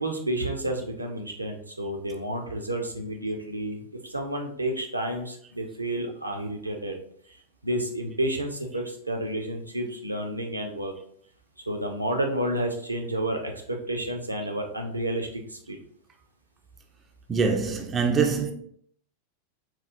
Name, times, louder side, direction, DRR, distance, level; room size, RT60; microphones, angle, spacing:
voice 1, 0.0-7.0 7.6-10.9 11.7-15.8, right 1 dB, 85° right, 0.5 m, -30 dB
voice 2, 17.3-18.5, right 5 dB, 20° right, 0.4 m, -24 dB
4.1 x 2.3 x 2.6 m
figure-of-eight pair, 90°, 0 cm